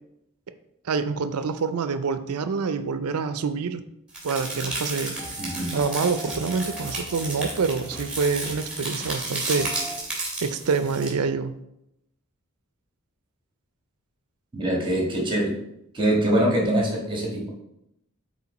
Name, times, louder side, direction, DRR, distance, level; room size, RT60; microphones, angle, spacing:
voice 1, 0.8-3.8 4.2-5.2 5.7-9.7 10.4-11.6, right 5 dB, 70° right, 11 dB, 0.5 m, -26 dB
sound 1, 4.1-11.1, right 2 dB, 5° right, 2.5 m, -33 dB
sound 2, 4.4-10.0, equal, 10° left, 1.5 m, -42 dB
voice 2, 5.4-5.7 14.5-15.5 15.9-17.5, right 1 dB, 20° right, -2 dB, 1.5 m, -23 dB
7.1 x 4.4 x 4.1 m, 0.82 s
head